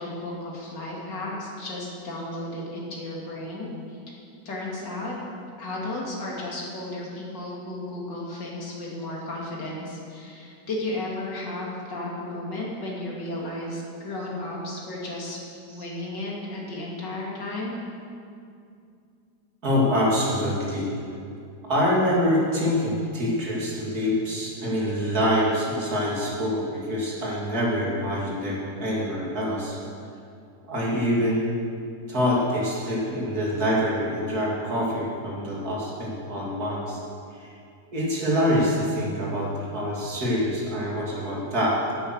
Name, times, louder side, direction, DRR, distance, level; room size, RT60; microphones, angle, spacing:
voice 1, 0.0-4.0 4.4-5.1 5.6-15.4 15.7-17.8, left 1 dB, 75° left, -4 dB, 3.2 m, -34 dB
voice 2, 19.6-20.9 21.6-29.8 30.7-31.5 32.1-37.0 37.4-37.5 37.9-41.8, equal, 55° right, -5 dB, 3.4 m, -25 dB
15.5 x 9.2 x 6.4 m, 2.4 s
omnidirectional pair, 1.9 m